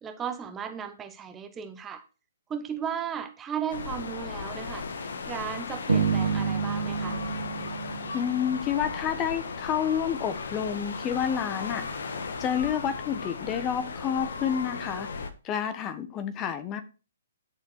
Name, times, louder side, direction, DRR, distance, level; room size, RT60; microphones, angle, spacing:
voice 1, 0.0-2.0 2.5-7.2, right 8 dB, 15° right, 8 dB, 1.1 m, -35 dB
sound 1, 3.7-15.3, left 4 dB, 65° left, 1.6 m, -36 dB
sound 2, 5.9-8.9, right 5 dB, 80° right, 2.2 m, -29 dB
voice 2, 8.1-11.8 12.4-16.8, left 8 dB, 25° left, 10 dB, 1.3 m, -29 dB
11.5 x 6.9 x 4.5 m, 0.33 s
figure-of-eight pair, 125°, 0 cm